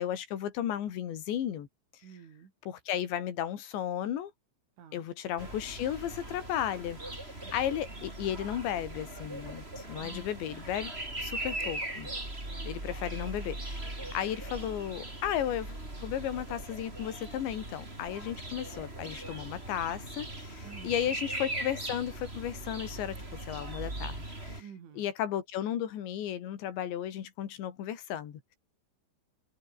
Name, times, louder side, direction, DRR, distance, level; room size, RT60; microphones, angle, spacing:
voice 1, 0.0-1.7 2.7-4.3 4.9-7.2 7.5-10.9 11.2-12.1 12.6-24.6 25.0-28.4, left 10 dB, 70° left, 4.7 m, -34 dB
voice 2, 2.0-2.5 4.8-5.1 7.4-8.0 9.9-10.3 14.0-14.2 20.6-21.1 24.6-25.1, right 7 dB, 75° right, 6.6 m, -51 dB
sound 1, 5.4-24.6, right 2 dB, 10° right, 5.4 m, -40 dB
omnidirectional pair, 5.5 m